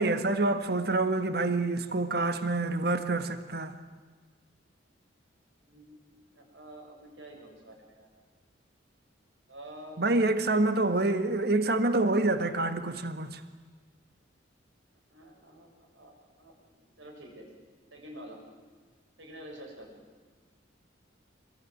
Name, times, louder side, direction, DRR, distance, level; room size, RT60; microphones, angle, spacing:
voice 1, 0.0-3.7 10.0-13.4, right 2 dB, 55° right, 1.6 m, -27 dB
voice 2, 5.6-8.1 9.5-10.0 15.1-17.5 17.9-18.4 19.2-20.0, right 1 dB, 80° right, 7.5 m, -48 dB
27.0 x 21.5 x 9.4 m
head